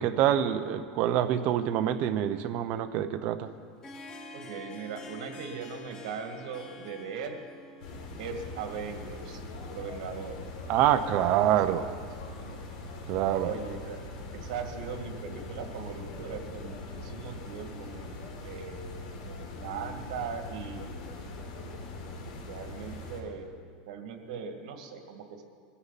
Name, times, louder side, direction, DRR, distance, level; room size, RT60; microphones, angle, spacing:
voice 1, 0.0-3.5 10.7-11.9 13.1-13.5, right 11 dB, 40° right, 8 dB, 0.7 m, -26 dB
Harp, 3.5-11.3, left 2 dB, 20° left, 1.1 m, -49 dB
voice 2, 4.3-7.5 8.2-9.4 9.7-10.6 11.5-11.8 12.4-12.6 13.3-14.0 14.3-20.9 22.5-25.4, right 6 dB, 75° right, 4 dB, 2.1 m, -39 dB
sound 1, 7.8-23.2, left 2 dB, 85° left, 3.7 m, -42 dB
22.0 x 15.0 x 4.1 m, 2.1 s
supercardioid pair, 170°, 4 cm